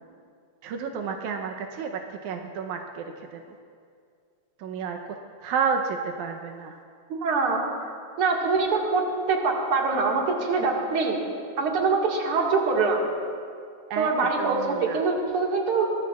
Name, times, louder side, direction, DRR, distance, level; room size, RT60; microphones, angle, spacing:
voice 1, 0.6-3.4 4.6-5.0 5.4-6.8 13.9-15.0, right 6 dB, 85° right, 4 dB, 2.2 m, -31 dB
voice 2, 7.1-7.7 8.2-9.0 9.3-11.2 11.6-13.1 14.0-15.9, right 4 dB, 50° right, -1 dB, 2.5 m, -24 dB
23.5 x 20.0 x 2.4 m, 2.3 s
omnidirectional pair, 3.3 m